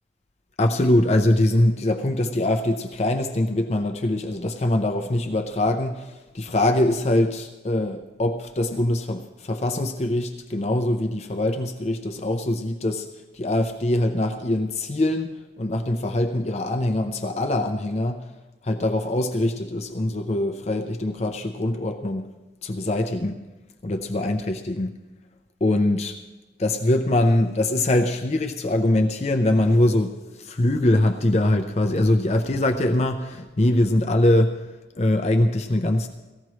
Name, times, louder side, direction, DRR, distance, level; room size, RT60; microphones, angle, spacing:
voice 1, 0.6-13.1 13.3-18.3 18.6-22.3 22.6-23.4 23.8-25.0 25.6-26.2 26.6-34.6 35.0-36.1, left 1 dB, 35° left, 5 dB, 0.5 m, -23 dB
18.0 x 14.5 x 3.1 m, 1.1 s
head